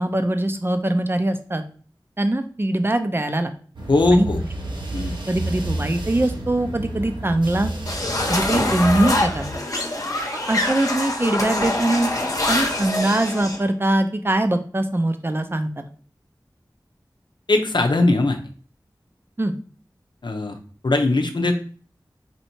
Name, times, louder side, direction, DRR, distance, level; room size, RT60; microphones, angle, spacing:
voice 1, 0.0-1.6 2.2-3.5 4.1-4.3 5.3-7.7 8.3-9.5 10.5-12.1 12.5-15.9 19.4-19.5, right 1 dB, 30° right, 8 dB, 0.5 m, -22 dB
sound 1, 3.7-9.5, right 1 dB, 85° right, 0.9 m, -30 dB
voice 2, 3.9-4.4 4.9-5.1 17.5-18.4 20.2-20.6 20.8-21.5, left 2 dB, 75° left, 5 dB, 0.6 m, -19 dB
sound 2, 7.9-13.6, left 1 dB, 45° left, 0.9 m, -24 dB
4.3 x 2.7 x 4.4 m, 0.43 s
wide cardioid pair, 50°, 8 cm